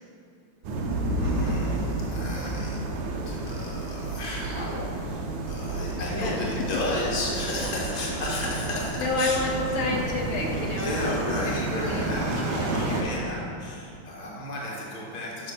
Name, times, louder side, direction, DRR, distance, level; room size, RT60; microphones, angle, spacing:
sound 1, 0.6-13.0, right 2 dB, 75° right, 1.5 m, -30 dB
voice 1, 1.1-2.9 3.3-9.4 10.8-15.5, left 1 dB, 25° left, -4 dB, 1.0 m, -33 dB
voice 2, 6.1-6.7 9.0-13.1, left 2 dB, 75° left, 0 dB, 1.4 m, -30 dB
7.2 x 5.6 x 4.2 m, 2.6 s
omnidirectional pair, 2.3 m